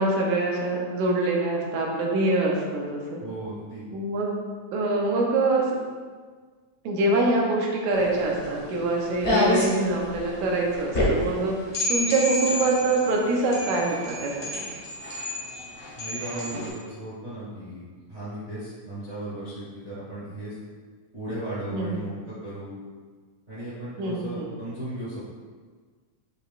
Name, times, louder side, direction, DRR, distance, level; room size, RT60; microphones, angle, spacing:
voice 1, 0.0-3.2 3.9-4.4 4.7-5.7 6.9-11.6 11.9-14.5 21.7-22.0 24.0-24.5, right 2 dB, 80° right, -1 dB, 2.1 m, -24 dB
voice 2, 3.2-3.9 16.0-17.8 18.1-20.5 21.1-22.7 23.5-25.2, right 1 dB, 40° right, -11 dB, 1.0 m, -36 dB
sound 1, 7.9-16.7, left 1 dB, 50° left, 0.6 m, -29 dB
6.6 x 3.3 x 2.4 m, 1.5 s
omnidirectional pair, 3.4 m